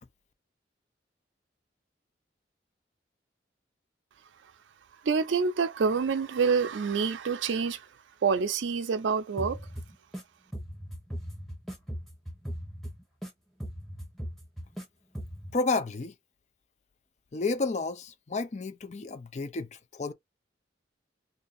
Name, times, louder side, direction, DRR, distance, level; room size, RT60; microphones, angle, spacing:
voice 1, 5.0-7.9 8.2-9.6, right 5 dB, 85° right, 0.4 m, -27 dB
sound 1, 9.4-10.2 10.5-13.3 13.6-14.8 15.2-15.5, equal, ahead, 0.9 m, -39 dB
voice 2, 15.5-16.1 17.3-20.1, left 3 dB, 40° left, 0.5 m, -31 dB
2.8 x 2.6 x 4.0 m
head